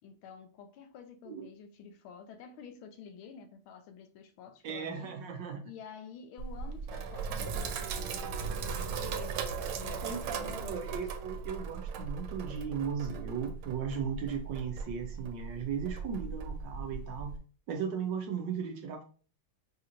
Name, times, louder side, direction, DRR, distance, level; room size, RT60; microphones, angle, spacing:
voice 1, 0.0-5.1 5.6-11.0, left 6 dB, 80° left, 1.5 m, -50 dB
voice 2, 4.6-5.6 10.0-17.3 17.7-19.0, right 6 dB, 70° right, 1.2 m, -36 dB
Sink (filling or washing), 6.4-17.4, right 5 dB, 90° right, 1.5 m, -38 dB
5.6 x 2.9 x 2.5 m
omnidirectional pair, 2.3 m